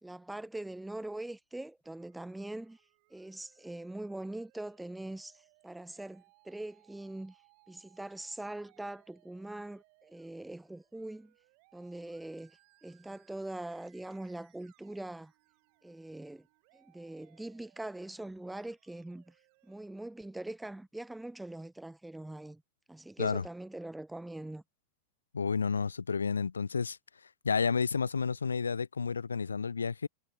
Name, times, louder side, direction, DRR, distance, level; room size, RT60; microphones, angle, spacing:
voice 1, 0.0-2.8 3.1-7.4 7.7-11.3 11.7-15.3 15.8-16.5 16.7-19.4 19.6-22.6 22.9-24.6, right 1 dB, 5° right, 0.6 m, -42 dB
Musical instrument, 1.8-19.8, right 38 dB, 45° right, 7.0 m, -68 dB
voice 2, 25.3-27.0 27.4-30.1, left 5 dB, 75° left, 0.6 m, -31 dB
figure-of-eight pair, 90°, 0 cm